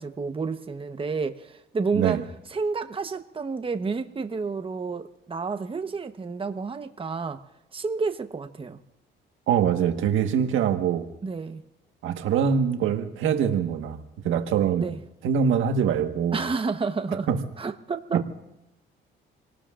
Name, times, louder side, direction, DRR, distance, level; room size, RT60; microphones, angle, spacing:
voice 1, 0.0-2.2 2.5-7.4 7.7-8.8 11.2-11.6 14.8-15.0 16.3-17.3 17.6-18.3, right 4 dB, 25° right, 7 dB, 1.1 m, -30 dB
voice 2, 9.5-11.1 12.0-14.0 14.2-14.9 15.2-16.4 17.3-17.4, right 8 dB, 85° right, 6 dB, 1.5 m, -23 dB
28.5 x 18.5 x 2.5 m, 0.97 s
cardioid pair, 90°, 20 cm